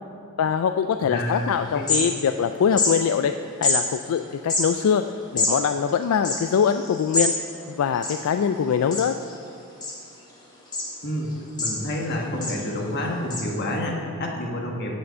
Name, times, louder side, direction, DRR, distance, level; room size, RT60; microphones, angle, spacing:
voice 1, 0.4-3.3 3.6-5.0 5.3-7.3 7.8-9.1, left 7 dB, 75° left, 8 dB, 0.3 m, -23 dB
voice 2, 1.0-1.9 2.3-2.4 11.0-11.3 11.6-15.0, left 1 dB, 50° left, 0 dB, 1.4 m, -29 dB
sound 1, 1.3-1.4 1.6-2.4 2.7-2.9 3.6-3.8 4.4-7.3 7.6-7.7 7.9-8.6 8.9-9.3 9.8-10.3 10.7-10.9 11.3-12.0 12.4-12.6 13.3-13.4, left 2 dB, 20° left, 1.7 m, -26 dB
7.7 x 6.8 x 6.8 m, 2.3 s
head